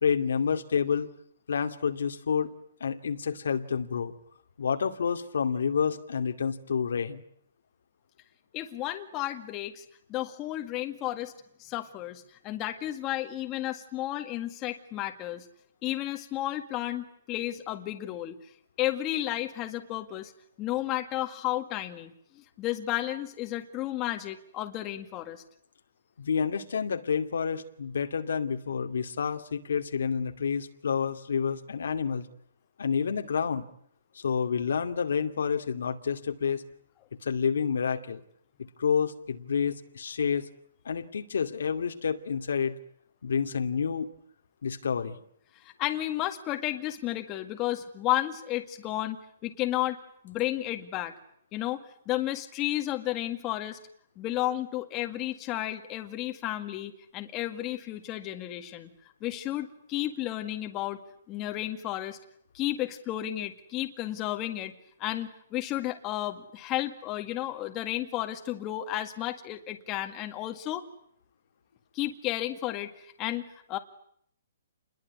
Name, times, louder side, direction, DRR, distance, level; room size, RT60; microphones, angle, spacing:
voice 1, 0.0-1.1 1.5-2.5 2.8-4.1 4.6-7.2 26.2-32.3 32.8-33.7 34.1-36.6 37.2-38.2 38.8-40.5 40.8-42.7 43.2-44.1 44.6-45.2, left 6 dB, 80° left, 7 dB, 2.4 m, -29 dB
voice 2, 8.5-9.8 10.1-11.3 11.6-15.4 15.8-18.4 18.8-20.3 20.6-22.1 22.6-25.4 45.6-50.0 50.2-51.1 51.5-53.8 54.2-58.9 59.2-61.0 61.3-62.2 62.5-64.7 65.0-70.8 71.9-73.8, left 14 dB, 20° left, 6 dB, 1.9 m, -32 dB
29.0 x 21.5 x 9.6 m, 0.69 s
hypercardioid pair, 175°, 0 cm